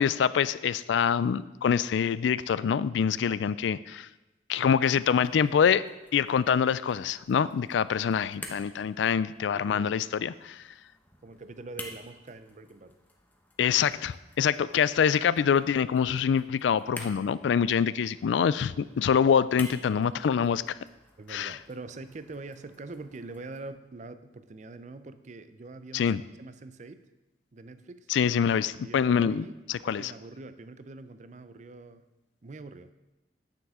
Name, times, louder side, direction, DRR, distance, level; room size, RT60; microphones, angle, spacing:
voice 1, 0.0-4.1 4.5-5.8 6.1-10.6 13.6-20.8 21.3-21.6 25.9-26.2 28.1-30.1, left 7 dB, 80° left, 17 dB, 0.3 m, -25 dB
sound 1, 4.8-23.7, left 1 dB, 10° left, 0.9 m, -50 dB
voice 2, 9.5-10.3 11.2-13.0 21.2-26.1 26.4-27.1 27.5-28.1 28.8-29.6 29.8-32.0 32.4-32.9, right 3 dB, 40° right, 12 dB, 0.5 m, -44 dB
9.7 x 9.2 x 3.7 m, 1.0 s
head